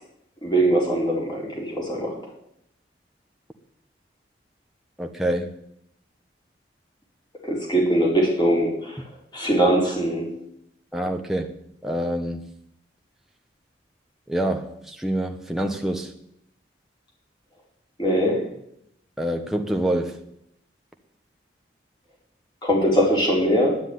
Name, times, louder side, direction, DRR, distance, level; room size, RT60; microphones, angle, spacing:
voice 1, 0.4-2.3 7.4-9.0 9.3-10.3 18.0-18.5 22.6-23.8, right 1 dB, 25° left, -2 dB, 4.6 m, -21 dB
voice 2, 5.0-5.5 10.9-11.5 11.8-12.5 14.3-16.1 19.2-20.2, right 1 dB, ahead, 2 dB, 1.0 m, -26 dB
10.5 x 9.9 x 9.5 m, 0.75 s
head